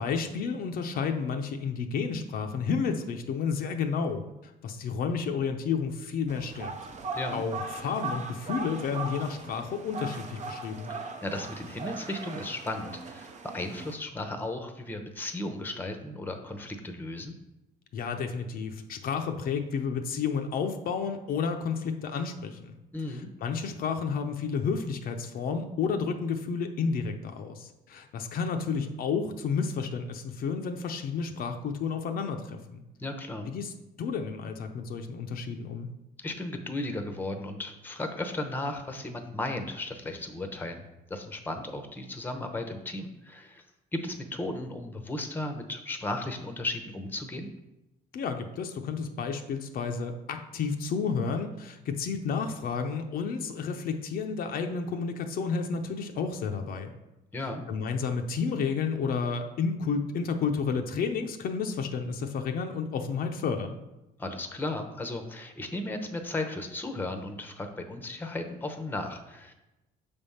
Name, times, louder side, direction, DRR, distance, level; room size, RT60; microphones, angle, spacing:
voice 1, 0.0-4.2 4.6-6.7 7.3-10.9 17.9-22.8 23.1-32.8 33.5-33.7 34.0-35.9 48.1-56.9 57.7-63.8, left 5 dB, 60° left, 5 dB, 0.6 m, -31 dB
sound 1, 6.3-13.9, right 3 dB, 45° right, 0.7 m, -39 dB
voice 2, 10.9-17.3 22.9-23.3 33.0-33.5 36.2-40.8 41.1-43.6 43.9-47.5 57.3-57.6 64.2-69.5, left 2 dB, 10° left, 6 dB, 0.8 m, -35 dB
6.7 x 3.5 x 5.5 m, 0.97 s
cardioid pair, 110°, 17 cm